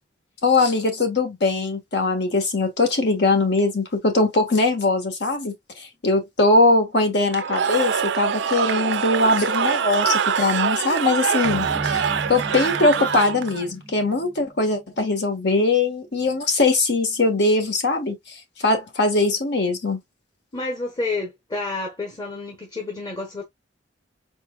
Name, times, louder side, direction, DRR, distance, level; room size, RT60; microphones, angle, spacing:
voice 1, 0.4-20.0, left 2 dB, 65° left, 1.3 m, -21 dB
Cheering / Crowd, 7.3-13.7, right 7 dB, 70° right, 0.5 m, -24 dB
sound 1, 11.4-16.1, right 2 dB, 15° right, 0.7 m, -36 dB
voice 2, 20.5-23.4, left 3 dB, 25° left, 1.1 m, -29 dB
4.4 x 4.2 x 2.2 m
head